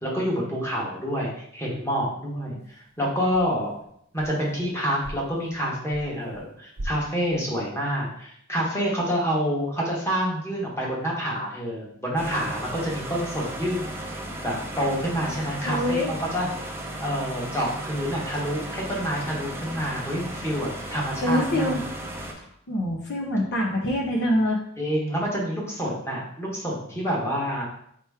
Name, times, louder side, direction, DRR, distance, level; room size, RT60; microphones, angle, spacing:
voice 1, 0.0-3.7 4.1-13.8 14.4-16.5 17.0-21.8 24.8-27.7, equal, 10° left, -4 dB, 1.2 m, -28 dB
sound 1, 2.6-3.0 3.3-4.7 5.0-6.4 6.8-7.7, equal, 50° right, 0.6 m, -41 dB
sound 2, 12.2-22.3, right 1 dB, 10° right, 0.6 m, -35 dB
voice 2, 15.7-16.1 21.2-21.8 22.7-24.6, left 1 dB, 55° left, 0 dB, 0.7 m, -24 dB
4.6 x 2.9 x 3.5 m, 0.68 s
head